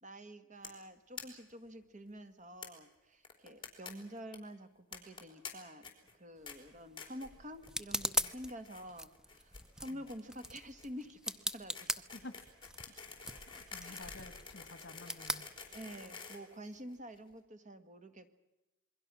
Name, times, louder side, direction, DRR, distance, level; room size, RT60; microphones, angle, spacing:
voice 1, 0.0-11.9 13.8-14.0 15.7-18.4, equal, 40° right, 9 dB, 1.8 m, -48 dB
sound 1, 0.6-0.8 1.2-1.3 1.5-1.6 1.8-1.9 2.6-2.7 3.2-4.4 4.9-5.5 5.8-6.1 6.5-6.6 7.0-7.3 7.6-8.0 8.2-8.8 9.1-17.2, left 5 dB, 25° left, 4.1 m, -49 dB
sound 2, 6.4-16.2, equal, 5° right, 0.7 m, -42 dB
voice 2, 13.5-15.5, left 2 dB, 60° left, 12 dB, 1.6 m, -51 dB
27.5 x 22.0 x 6.3 m, 1.0 s
head